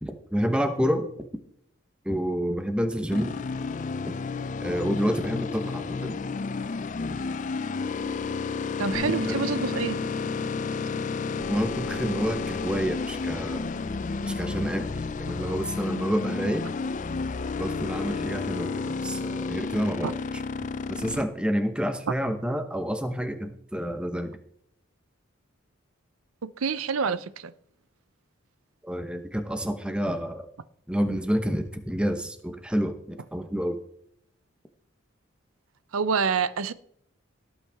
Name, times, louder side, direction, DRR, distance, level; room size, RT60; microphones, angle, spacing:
voice 1, 0.0-1.1 2.0-3.3 4.6-6.2 9.3-9.4 11.5-13.7 14.2-14.9 15.2-16.7 17.6-20.1 20.9-24.4 28.8-30.5 30.9-33.8, equal, 5° right, 1.0 m, -28 dB
sound 1, 3.1-21.2, left 4 dB, 35° left, 0.4 m, -31 dB
voice 2, 8.8-10.0 20.0-20.1 26.4-27.5 35.9-36.7, right 5 dB, 90° right, 0.6 m, -27 dB
Bass guitar, 8.9-15.2, left 3 dB, 30° right, 5.0 m, -39 dB
17.5 x 8.7 x 3.5 m
head